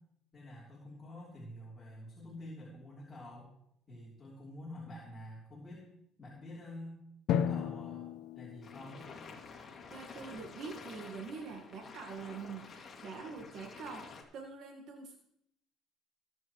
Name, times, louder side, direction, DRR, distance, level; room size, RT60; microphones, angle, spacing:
voice 1, 0.3-3.6 3.9-5.9 6.2-7.0 7.3-9.1, left 1 dB, 20° left, -6 dB, 3.3 m, -48 dB
Drum, 7.3-9.8, left 8 dB, 65° left, 0.7 m, -35 dB
sound 1, 8.6-14.2, left 5 dB, 35° left, 2.2 m, -50 dB
voice 2, 9.9-15.2, right 5 dB, 60° right, 3 dB, 1.5 m, -45 dB
20.0 x 7.7 x 3.1 m, 0.78 s
cardioid pair, 115°, 0 cm